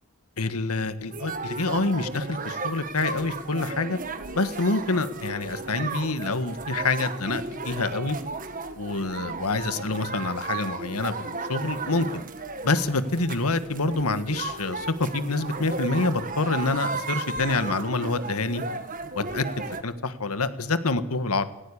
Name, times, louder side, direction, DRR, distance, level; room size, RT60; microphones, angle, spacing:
voice 1, 0.4-4.0 4.3-8.2 8.8-12.2 12.6-18.6 19.1-21.4, left 3 dB, 90° left, 12 dB, 1.6 m, -27 dB
sound 1, 1.1-19.8, right 3 dB, 40° right, 1.7 m, -35 dB
17.0 x 17.0 x 10.0 m, 0.98 s
head